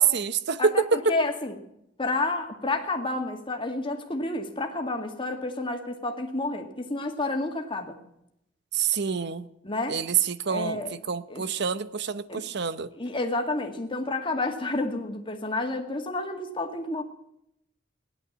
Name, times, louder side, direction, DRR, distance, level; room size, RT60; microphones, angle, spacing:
voice 1, 0.0-1.1 8.7-9.5 9.9-12.9, right 6 dB, 60° right, 14 dB, 0.8 m, -26 dB
voice 2, 0.6-1.6 2.0-8.0 9.6-10.0 10.5-10.9 11.3-11.4 12.3-12.4 12.9-17.0, left 2 dB, 25° left, 4 dB, 2.0 m, -30 dB
17.0 x 11.5 x 7.3 m, 0.78 s
head